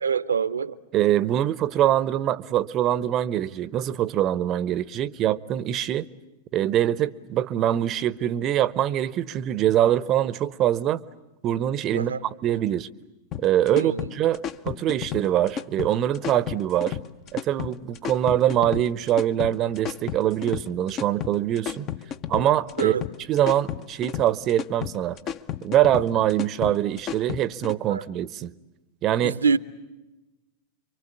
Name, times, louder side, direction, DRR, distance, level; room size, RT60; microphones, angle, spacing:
voice 1, 0.0-0.7 11.9-12.2 13.7-14.1 22.8-23.0 27.9-28.0 29.2-29.6, right 6 dB, 70° right, 1.0 m, -25 dB
voice 2, 0.9-6.1 6.5-11.0 11.4-12.9 13.4-17.0 17.3-21.9 22.3-23.0 23.3-25.2 25.6-28.5 29.0-29.4, right 11 dB, 35° right, 0.9 m, -24 dB
sound 1, 13.3-27.7, left 10 dB, 35° left, 1.0 m, -33 dB
28.0 x 25.0 x 8.5 m
figure-of-eight pair, 90°, 0 cm